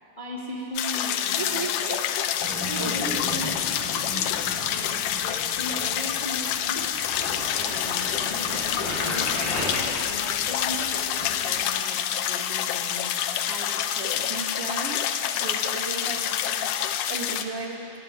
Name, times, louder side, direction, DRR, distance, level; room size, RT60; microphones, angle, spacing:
voice 1, 0.2-1.9 2.7-3.3 4.7-7.0 7.6-9.4 10.1-13.2, equal, 20° left, -3 dB, 1.6 m, -38 dB
sound 1, 0.8-17.5, left 10 dB, 75° left, 2.0 m, -27 dB
voice 2, 1.4-2.1 2.8-3.7 13.5-15.0 15.3-18.0, right 3 dB, 65° right, 1 dB, 1.4 m, -35 dB
Vehicle, 2.4-11.5, equal, 55° left, 7.6 m, -36 dB
17.5 x 16.0 x 9.3 m, 2.9 s
omnidirectional pair, 4.2 m